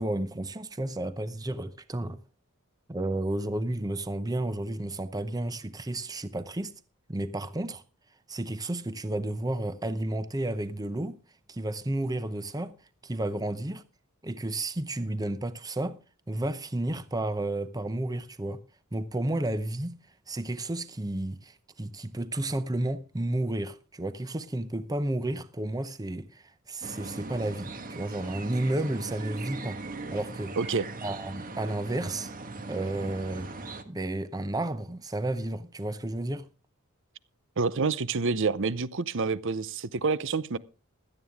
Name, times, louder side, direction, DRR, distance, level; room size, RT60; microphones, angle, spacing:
voice 1, 0.0-2.2 2.9-6.7 7.1-7.8 8.3-11.2 11.5-12.7 13.0-13.8 14.2-16.0 16.3-18.6 18.9-20.0 20.3-29.8 30.1-30.6 31.0-32.3 32.7-33.5 33.9-36.5, right 1 dB, 15° right, 0.7 m, -32 dB
sound 1, 26.8-33.8, right 2 dB, 40° right, 1.5 m, -39 dB
voice 2, 37.6-40.6, right 4 dB, 60° right, 0.7 m, -28 dB
16.5 x 12.5 x 3.6 m
head